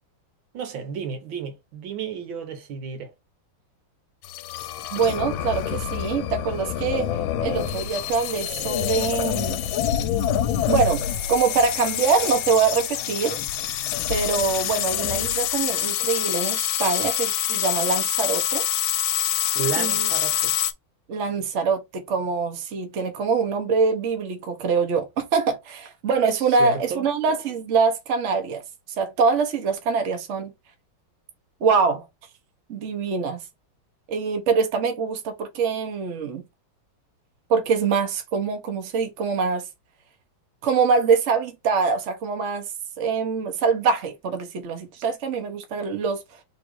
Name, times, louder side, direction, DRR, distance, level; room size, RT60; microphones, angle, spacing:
voice 1, 0.5-3.1 19.6-20.5 26.6-27.1, right 6 dB, 80° right, 1.8 m, -32 dB
sound 1, 4.2-20.7, left 11 dB, 85° left, 1.4 m, -26 dB
voice 2, 4.9-7.1 7.4-9.6 10.6-11.0 11.3-13.4 14.1-18.6 19.8-20.1 21.1-28.6 29.0-30.5 31.6-32.1 32.7-33.4 34.1-36.4 37.5-39.7 40.6-42.7 43.0-46.2, right 5 dB, 45° right, 1.1 m, -24 dB
3.9 x 2.7 x 4.6 m
omnidirectional pair, 2.1 m